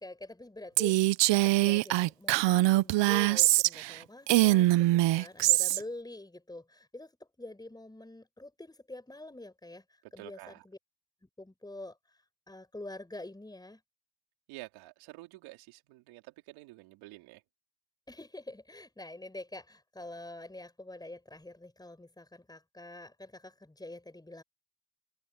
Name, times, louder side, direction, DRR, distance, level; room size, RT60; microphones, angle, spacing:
voice 1, 0.0-4.9 5.1-7.1 7.4-9.8 10.1-10.8 11.4-12.0 12.5-13.8 18.1-24.4, left 2 dB, 10° left, 6.8 m, -46 dB
Female speech woman speaking, 0.8-3.9 4.3-5.8, right 17 dB, 65° right, 0.9 m, -23 dB
voice 2, 10.2-10.6 14.5-17.4, right 20 dB, 85° right, 3.7 m, -49 dB
cardioid pair, 100°, 47 cm